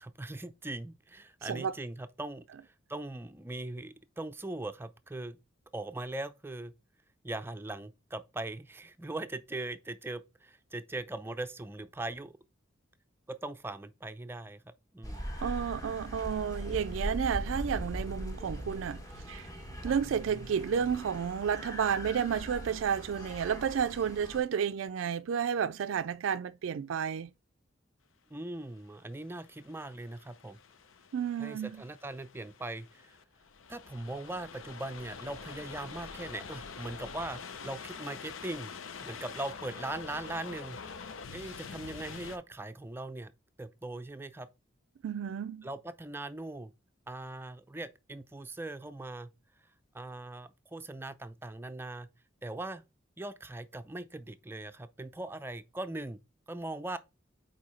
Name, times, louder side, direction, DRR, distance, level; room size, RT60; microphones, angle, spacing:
voice 1, 0.0-2.5 2.9-5.4 5.7-6.7 7.2-12.4 13.3-15.2 19.8-19.9 28.3-30.6 31.4-33.2 33.7-38.7 39.0-40.8 41.3-43.3 43.6-44.5 45.6-46.7 47.1-49.3 49.9-52.1 52.4-52.8 53.2-56.2 56.5-57.0, right 2 dB, 10° right, 0.5 m, -40 dB
voice 2, 1.4-1.7 15.4-19.5 19.8-27.3 31.1-31.8 45.0-45.7, right 7 dB, 75° right, 0.3 m, -31 dB
sound 1, 15.0-24.4, equal, 20° left, 1.4 m, -40 dB
sound 2, 28.8-42.4, left 5 dB, 85° left, 0.7 m, -46 dB
4.8 x 4.6 x 5.5 m
head